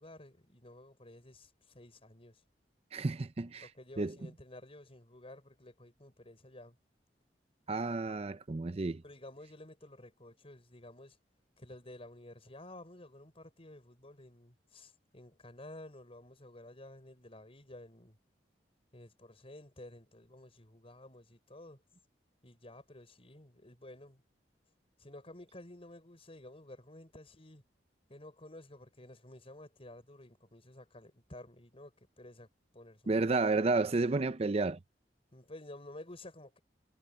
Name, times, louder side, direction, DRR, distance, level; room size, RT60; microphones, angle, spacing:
voice 1, 0.0-2.4 3.6-6.8 9.0-11.2 11.6-18.2 18.9-21.8 22.4-24.2 25.0-27.6 28.1-32.5 32.7-33.2 35.3-36.6, left 1 dB, 35° left, 5.7 m, -52 dB
voice 2, 2.9-3.7 4.0-4.1 7.7-9.0 33.1-34.8, right 3 dB, 35° right, 0.6 m, -31 dB
head